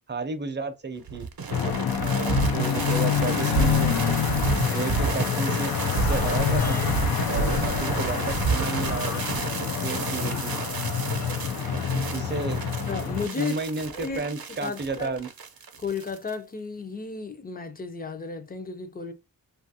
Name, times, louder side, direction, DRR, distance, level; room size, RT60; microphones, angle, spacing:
voice 1, 0.1-1.3 2.0-4.0 4.7-5.7 6.0-6.8 7.3-9.4 9.8-10.5 12.1-12.6 13.4-15.3, right 4 dB, 30° right, 0.5 m, -32 dB
sound 1, 1.1-16.3, right 5 dB, 70° right, 0.7 m, -30 dB
sound 2, 1.5-13.3, left 7 dB, 85° left, 0.6 m, -27 dB
sound 3, 5.3-11.9, left 2 dB, 50° left, 0.8 m, -40 dB
voice 2, 12.9-13.6 13.9-14.2 14.6-15.1 15.8-19.1, left 5 dB, 25° left, 0.5 m, -33 dB
2.7 x 2.4 x 2.6 m
wide cardioid pair, 105°, 36 cm